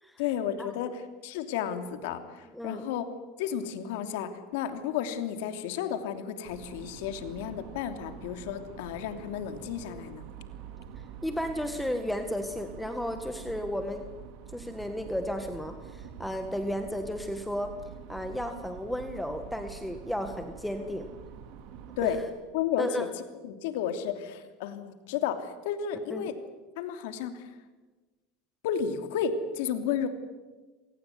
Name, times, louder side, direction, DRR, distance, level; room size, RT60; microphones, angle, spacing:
voice 1, 0.2-3.0 3.4-10.3 22.0-22.2 22.5-23.1 23.4-26.3 26.8-27.5 28.6-30.1, left 8 dB, 75° left, 8 dB, 3.0 m, -32 dB
voice 2, 2.5-2.8 11.2-14.0 14.5-17.7 18.1-21.1 22.0-22.2 22.8-23.1 26.1-26.3, equal, 5° left, 6 dB, 1.8 m, -33 dB
sound 1, 6.4-22.2, right 8 dB, 60° right, 2.6 m, -46 dB
28.0 x 18.0 x 9.6 m, 1.3 s
supercardioid pair, 130°, 0 cm